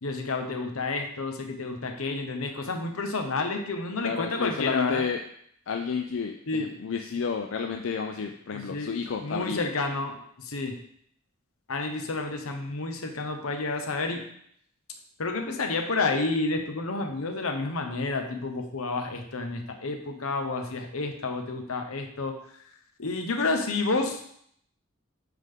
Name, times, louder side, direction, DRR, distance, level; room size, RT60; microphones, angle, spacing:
voice 1, 0.0-5.1 6.5-6.7 8.5-9.0 9.2-10.8 11.7-14.2 15.2-22.4 23.0-24.2, left 3 dB, 85° left, 5 dB, 0.9 m, -30 dB
voice 2, 4.0-5.2 5.7-9.6, left 5 dB, 60° left, 4 dB, 0.4 m, -31 dB
8.9 x 3.7 x 3.7 m, 0.67 s
head